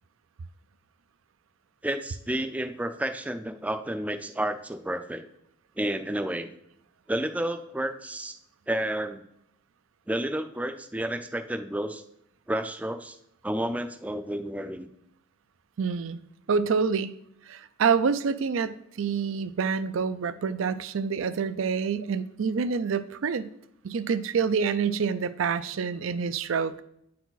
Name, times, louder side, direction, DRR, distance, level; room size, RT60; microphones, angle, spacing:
voice 1, 1.8-5.2 5.8-6.5 7.1-8.4 8.7-9.2 10.1-12.0 12.5-13.2 13.4-14.9, right 1 dB, 5° right, 8 dB, 0.4 m, -31 dB
voice 2, 15.8-16.2 16.5-17.1 17.5-23.5 23.8-26.8, right 5 dB, 80° right, 13 dB, 0.4 m, -27 dB
9.1 x 4.7 x 4.0 m, 0.76 s
head